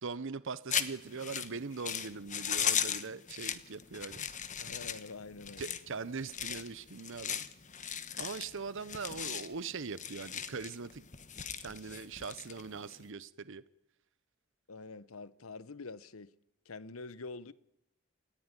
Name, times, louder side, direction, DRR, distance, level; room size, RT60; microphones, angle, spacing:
voice 1, 0.0-4.3 5.6-7.5 8.2-11.1 11.6-13.6, right 4 dB, 65° right, 0.8 m, -41 dB
sound 1, 0.7-13.1, left 8 dB, 35° left, 1.3 m, -38 dB
voice 2, 4.6-5.8 14.7-16.3 16.6-17.5, left 3 dB, 85° left, 1.0 m, -46 dB
28.5 x 15.5 x 9.8 m
head